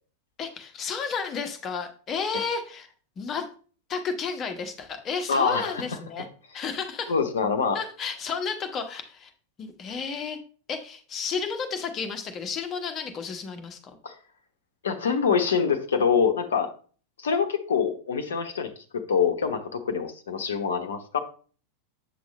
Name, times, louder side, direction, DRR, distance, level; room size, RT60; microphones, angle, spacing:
voice 1, 0.4-3.5 3.9-6.3 6.5-7.1 7.7-9.3 9.6-10.4 10.7-14.0, left 5 dB, 30° left, 6 dB, 1.2 m, -32 dB
voice 2, 5.3-5.8 7.1-7.8 14.0-14.1 14.8-16.7 17.2-18.7 19.1-21.2, left 6 dB, 65° left, 8 dB, 0.9 m, -25 dB
8.4 x 6.1 x 3.1 m, 0.41 s
figure-of-eight pair, 90°, 0 cm